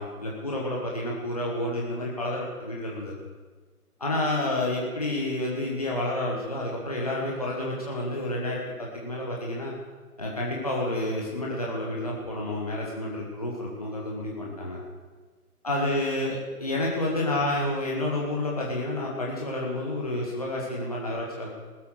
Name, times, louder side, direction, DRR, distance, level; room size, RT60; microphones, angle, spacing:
voice 1, 0.0-3.2 4.0-9.7 10.2-14.8 15.6-21.5, left 1 dB, 25° left, -3 dB, 1.3 m, -29 dB
19.0 x 8.2 x 6.5 m, 1.4 s
figure-of-eight pair, 160°, 45 cm